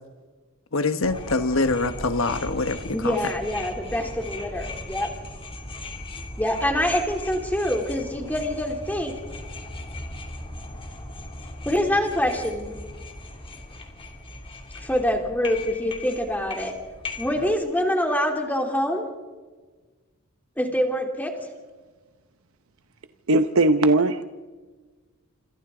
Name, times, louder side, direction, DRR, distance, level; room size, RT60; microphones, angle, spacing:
voice 1, 0.7-3.2, left 3 dB, 70° left, 10 dB, 1.3 m, -24 dB
sound 1, 1.0-17.5, left 2 dB, 25° left, 2.9 m, -38 dB
voice 2, 2.9-5.1 6.4-9.1 11.6-12.7 14.8-16.7 17.2-19.1 20.6-21.3, equal, 10° left, 2 dB, 3.1 m, -25 dB
voice 3, 23.3-24.2, right 2 dB, 85° right, 9 dB, 0.8 m, -19 dB
27.0 x 26.5 x 3.8 m, 1.3 s
head